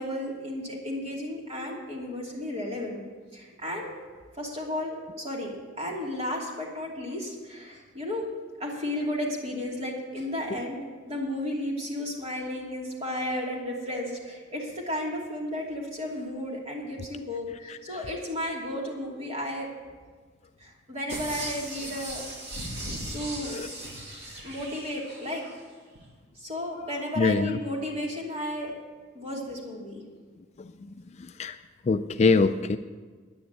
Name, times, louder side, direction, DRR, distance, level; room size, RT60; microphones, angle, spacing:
voice 1, 0.0-3.0 3.3-3.9 4.3-8.3 8.6-19.7 20.6-22.3 23.1-23.6 24.4-25.5 26.3-28.7 29.1-30.0, left 1 dB, 30° right, -2 dB, 2.8 m, -33 dB
sound 1, 21.1-25.5 26.0-26.1, right 1 dB, 55° right, 2.7 m, -38 dB
voice 2, 27.2-27.6 31.4-31.6 31.9-32.8, left 4 dB, 35° left, 9 dB, 0.3 m, -23 dB
10.0 x 9.6 x 8.1 m, 1.5 s
head